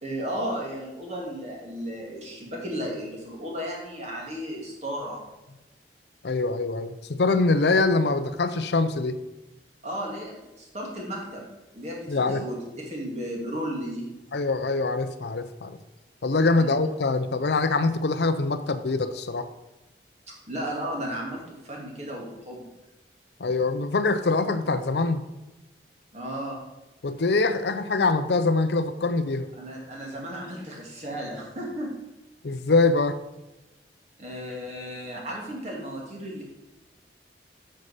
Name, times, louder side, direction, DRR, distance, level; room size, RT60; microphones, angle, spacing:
voice 1, 0.0-5.2 9.8-11.5 11.7-14.0 16.5-16.7 20.5-22.7 26.1-26.6 29.6-31.9 34.2-36.4, equal, 40° right, -2 dB, 2.4 m, -34 dB
voice 2, 6.2-9.2 12.1-12.4 14.3-15.8 16.2-19.5 23.4-25.2 27.0-29.5 32.4-33.2, left 3 dB, 70° left, 11 dB, 0.6 m, -24 dB
8.5 x 6.6 x 5.0 m, 1.0 s
head